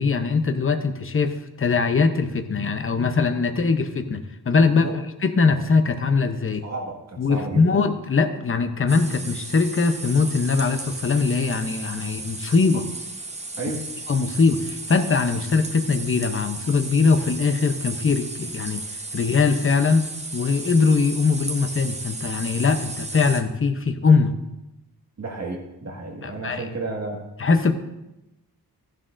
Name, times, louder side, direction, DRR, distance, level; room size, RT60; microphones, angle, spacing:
voice 1, 0.0-4.2 4.4-4.9 5.2-6.6 7.2-12.9 14.1-18.8 19.1-20.1 20.3-24.3 26.2-26.7 27.4-27.7, left 4 dB, 35° left, 7 dB, 0.7 m, -21 dB
voice 2, 6.6-7.7 13.5-13.9 25.2-27.2, right 2 dB, 45° right, 0 dB, 1.8 m, -32 dB
sound 1, 8.9-23.4, right 3 dB, 20° right, 0.6 m, -35 dB
14.5 x 11.0 x 2.5 m, 0.95 s
wide cardioid pair, 175°, 38 cm